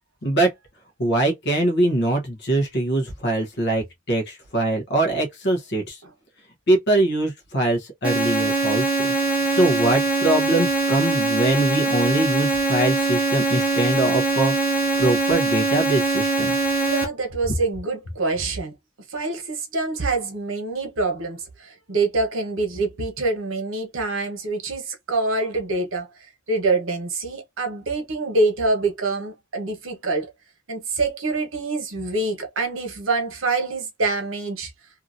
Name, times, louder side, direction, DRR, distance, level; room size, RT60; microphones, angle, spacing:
voice 1, 1.0-6.0 6.7-9.1 9.5-14.5 15.0-16.5, right 2 dB, 55° left, 0.9 m, -22 dB
sound 1, 8.0-17.0, right 3 dB, 5° right, 1.0 m, -22 dB
voice 2, 16.8-18.7 19.1-26.1 26.5-30.3 30.7-34.7, right 3 dB, 65° right, 1.1 m, -25 dB
2.8 x 2.6 x 2.5 m
head